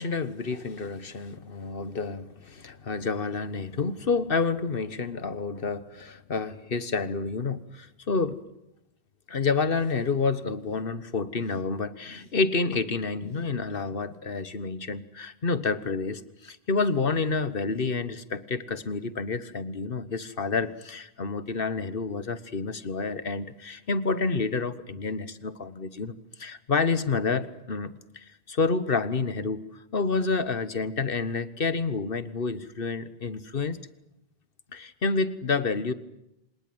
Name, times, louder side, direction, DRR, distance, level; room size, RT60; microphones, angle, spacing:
voice 1, 0.0-8.4 9.3-29.6 29.9-33.8 34.7-35.9, left 4 dB, 60° left, 15 dB, 1.5 m, -29 dB
26.0 x 19.5 x 9.4 m, 0.86 s
omnidirectional pair, 1.1 m